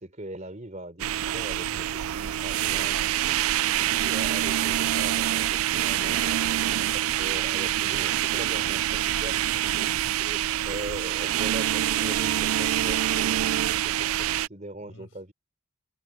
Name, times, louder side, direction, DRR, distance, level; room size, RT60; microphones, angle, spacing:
voice 1, 0.0-3.2 3.7-6.5 6.9-9.4 9.7-15.3, right 1 dB, 35° right, 3.6 m, -40 dB
sound 1, 1.0-14.5, right 12 dB, 80° right, 0.4 m, -26 dB
voice 2, 2.5-4.2 8.9-9.7 12.6-12.8 14.8-15.2, left 3 dB, 65° left, 5.5 m, -51 dB
head